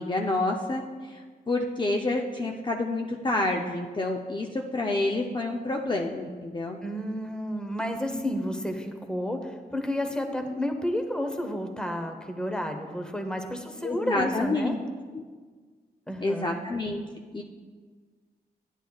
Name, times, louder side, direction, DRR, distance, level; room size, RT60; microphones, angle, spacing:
voice 1, 0.0-6.8 13.8-14.8 15.1-15.2 16.2-17.0 17.3-17.4, left 2 dB, 30° left, 1 dB, 0.6 m, -28 dB
voice 2, 6.8-14.7 16.1-16.5, equal, 5° left, 5 dB, 0.9 m, -31 dB
10.0 x 9.7 x 2.3 m, 1.5 s
cardioid pair, 85°, 16 cm